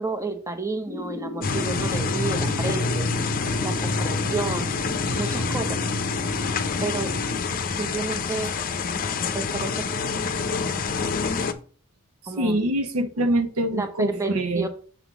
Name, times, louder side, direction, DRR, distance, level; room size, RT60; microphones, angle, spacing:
voice 1, 0.0-3.1 3.6-4.8 5.1-5.8 6.8-7.1 7.8-8.5 9.3-9.7 12.3-12.6 13.7-14.7, right 3 dB, 15° right, 0.8 m, -30 dB
sound 1, 0.8-7.4, left 1 dB, 10° left, 1.4 m, -34 dB
sound 2, 1.4-11.5, left 4 dB, 40° left, 0.6 m, -27 dB
voice 2, 12.2-14.7, right 1 dB, 75° right, 0.8 m, -24 dB
7.0 x 3.7 x 6.0 m
head